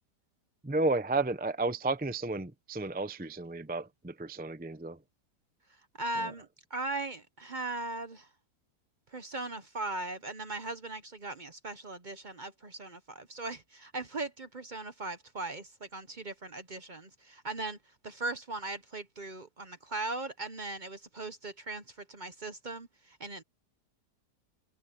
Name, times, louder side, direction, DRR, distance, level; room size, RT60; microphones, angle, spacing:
voice 1, 0.6-5.0 6.2-6.3, right 2 dB, 10° right, 0.4 m, -32 dB
voice 2, 6.0-8.3 9.1-17.8 18.0-23.4, right 2 dB, 35° right, 0.8 m, -39 dB
omnidirectional pair, 1.8 m